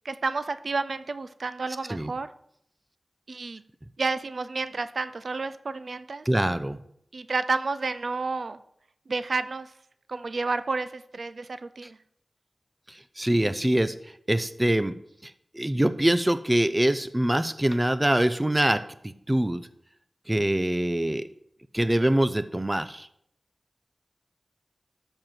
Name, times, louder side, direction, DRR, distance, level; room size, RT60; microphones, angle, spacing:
voice 1, 0.0-2.3 3.3-3.6 4.0-6.2 7.1-8.6 9.1-9.7 10.1-12.0, right 3 dB, 70° right, 13 dB, 0.5 m, -30 dB
voice 2, 6.3-6.8 12.9-13.9 14.3-14.9 15.2-19.7 20.3-21.3 21.7-23.1, right 1 dB, 15° right, 12 dB, 0.7 m, -24 dB
13.0 x 4.6 x 7.6 m, 0.71 s
wide cardioid pair, 85°, 0 cm